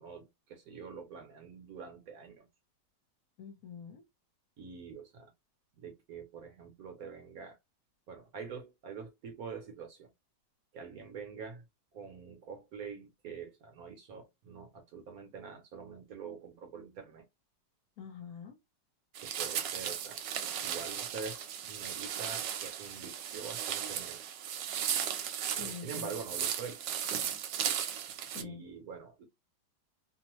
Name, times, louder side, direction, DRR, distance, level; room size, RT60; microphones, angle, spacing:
voice 1, 0.0-2.5 4.6-5.3 5.8-7.6 8.1-10.1 10.7-11.6 11.9-17.3 19.2-20.2 20.6-24.2 25.5-26.8 27.1-27.2 28.3-29.2, right 5 dB, 65° right, 1.0 m, -45 dB
voice 2, 3.4-4.0 18.0-18.5 25.5-26.1 28.2-28.6, left 7 dB, 65° left, 1.2 m, -45 dB
sound 1, 19.1-28.4, right 9 dB, 80° right, 1.2 m, -36 dB
3.0 x 2.1 x 3.0 m
omnidirectional pair, 1.9 m